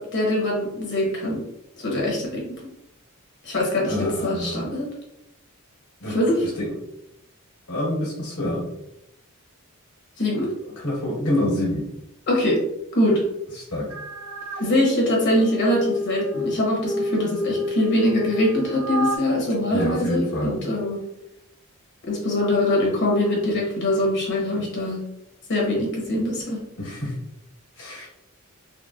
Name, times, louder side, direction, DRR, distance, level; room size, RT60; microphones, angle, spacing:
voice 1, 0.0-1.4 1.8-2.6 3.4-4.9 6.1-6.5 10.2-10.5 12.3-12.6 12.9-13.2 14.6-21.0 22.0-25.0 25.5-26.6, left 1 dB, 55° left, -3 dB, 1.0 m, -23 dB
voice 2, 3.9-4.7 6.0-6.1 6.4-6.7 7.7-8.6 10.8-11.9 13.6-13.9 14.5-14.6 19.7-20.5 26.8-27.1 27.8-28.1, left 1 dB, 90° left, -5 dB, 1.5 m, -27 dB
sound 1, 13.9-14.6 15.1-19.2, left 2 dB, 80° right, 0.7 m, -29 dB
3.8 x 2.2 x 2.4 m, 0.82 s
head